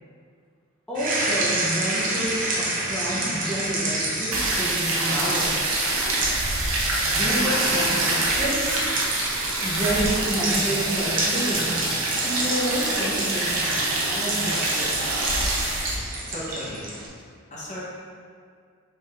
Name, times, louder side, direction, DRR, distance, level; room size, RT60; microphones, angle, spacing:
voice 1, 0.9-5.7 7.0-8.7 9.6-12.0 12.2-13.8 14.1-15.2, right 1 dB, 5° left, -9 dB, 1.0 m, -29 dB
sound 1, 0.9-17.1, right 2 dB, 40° right, 1.1 m, -30 dB
sound 2, 4.3-16.0, right 2 dB, 75° right, 1.1 m, -25 dB
voice 2, 16.3-16.9 17.5-17.8, equal, 35° left, -6 dB, 1.1 m, -35 dB
5.8 x 4.5 x 3.6 m, 2.1 s
head